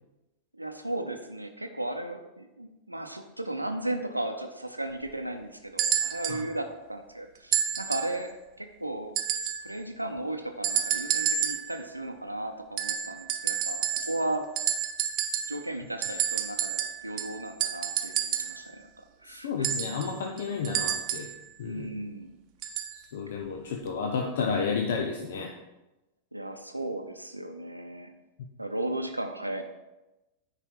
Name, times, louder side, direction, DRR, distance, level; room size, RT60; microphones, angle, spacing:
voice 1, 0.5-8.3 8.6-9.1 9.6-14.4 15.5-19.7 20.8-20.9 21.7-22.3 26.3-28.1 28.6-29.6, right 1 dB, 85° right, 5 dB, 0.6 m, -35 dB
sound 1, 5.8-6.4 7.5-8.2 9.2-9.7 10.6-11.7 12.8-14.3 14.6-15.6 16.0-18.6 19.6-21.4 22.6-23.0 23.9-24.0, right 9 dB, 40° right, 0.7 m, -29 dB
voice 2, 19.2-21.3 21.6-22.0 22.9-25.5, left 5 dB, 60° left, 2 dB, 0.8 m, -31 dB
9.9 x 4.9 x 4.7 m, 1.0 s
figure-of-eight pair, 90°, 0 cm